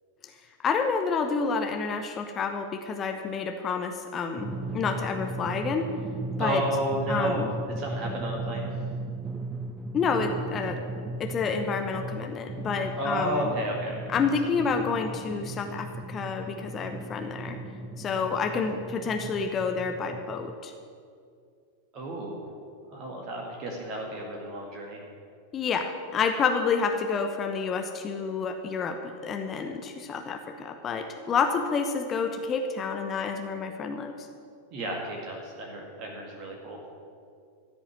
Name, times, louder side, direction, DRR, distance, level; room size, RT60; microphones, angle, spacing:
voice 1, 0.6-5.9 6.4-6.6 7.1-7.5 9.9-10.8 11.2-13.5 14.1-17.6 18.0-20.7 25.5-34.1, left 5 dB, 25° left, 5 dB, 0.9 m, -29 dB
Drum, 4.4-20.5, right 2 dB, 15° right, 0.5 m, -37 dB
voice 2, 6.4-7.5 7.8-8.7 13.0-14.1 21.9-22.5 22.8-25.1 34.7-36.8, right 1 dB, 35° right, -1 dB, 2.0 m, -32 dB
14.0 x 5.5 x 9.6 m, 2.3 s
figure-of-eight pair, 90°, 0 cm